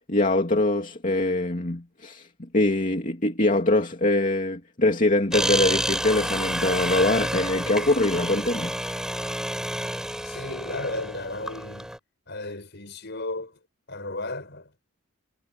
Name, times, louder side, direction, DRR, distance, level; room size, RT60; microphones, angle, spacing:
voice 1, 0.1-2.3 2.5-8.7, left 2 dB, 40° left, 2.7 m, -23 dB
sound 1, 5.3-12.0, right 1 dB, 5° right, 6.1 m, -29 dB
voice 2, 10.2-11.9 12.3-13.6 13.9-14.7, left 2 dB, 55° left, 7.1 m, -34 dB
head